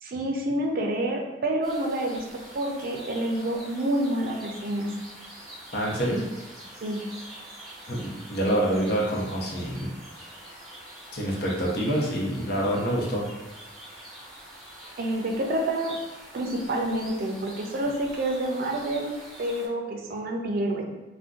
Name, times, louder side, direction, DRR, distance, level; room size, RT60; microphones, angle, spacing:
voice 1, 0.0-4.9 6.8-7.1 15.0-16.0 16.3-20.8, right 1 dB, 55° right, 2 dB, 0.4 m, -28 dB
sound 1, 1.6-19.7, right 1 dB, ahead, 0.8 m, -45 dB
voice 2, 5.7-6.2 7.9-9.9 11.1-13.2, right 1 dB, 65° left, -3 dB, 0.7 m, -26 dB
2.5 x 2.1 x 3.7 m, 1.1 s
head